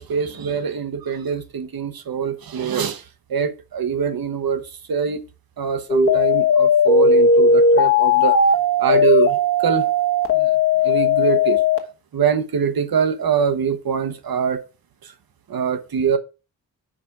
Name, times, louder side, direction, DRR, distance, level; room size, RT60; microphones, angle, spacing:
voice 1, 0.0-3.0 3.3-4.6 4.9-5.2 5.6-8.3 8.8-9.9 10.3-10.5 10.8-11.6 12.1-14.6 15.5-16.2, right 7 dB, 75° right, 1.0 m, -23 dB
sound 1, 5.9-11.8, left 3 dB, 35° left, 1.3 m, -16 dB
5.1 x 5.0 x 5.9 m
wide cardioid pair, 120°, 36 cm